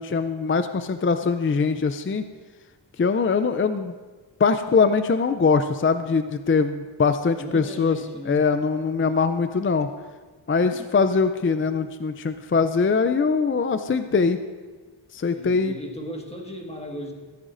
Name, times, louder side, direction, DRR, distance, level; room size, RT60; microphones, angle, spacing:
voice 1, 0.0-2.2 3.0-3.9 4.4-8.0 8.3-9.9 10.5-14.4 15.1-15.8, left 5 dB, 30° left, 9 dB, 0.4 m, -22 dB
voice 2, 7.4-8.5 10.7-10.9 15.3-17.1, equal, 15° left, 1 dB, 1.6 m, -36 dB
15.5 x 14.0 x 2.6 m, 1.4 s
wide cardioid pair, 105°, 44 cm